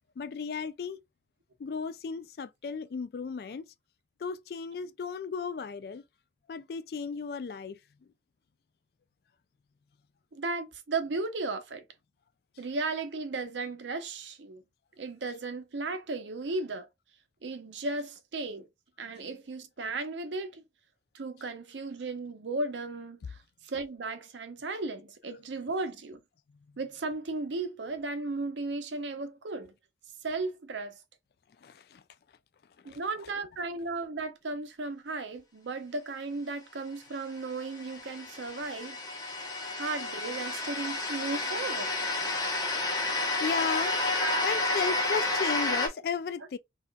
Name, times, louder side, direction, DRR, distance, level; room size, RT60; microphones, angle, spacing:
voice 1, 0.2-1.0 1.6-3.7 4.2-6.0 6.5-7.8 31.6-32.0 32.8-33.0 43.4-44.0 44.4-46.6, left 5 dB, 55° left, 0.3 m, -34 dB
voice 2, 10.3-11.8 12.6-14.6 15.0-16.9 17.4-18.7 19.0-20.6 21.1-23.4 23.6-26.2 26.8-29.7 30.2-31.0 32.8-39.0 39.7-41.9 44.2-44.5, right 3 dB, 90° right, 0.6 m, -35 dB
sound 1, 37.5-45.9, left 2 dB, 20° left, 0.7 m, -31 dB
4.0 x 2.4 x 2.2 m
head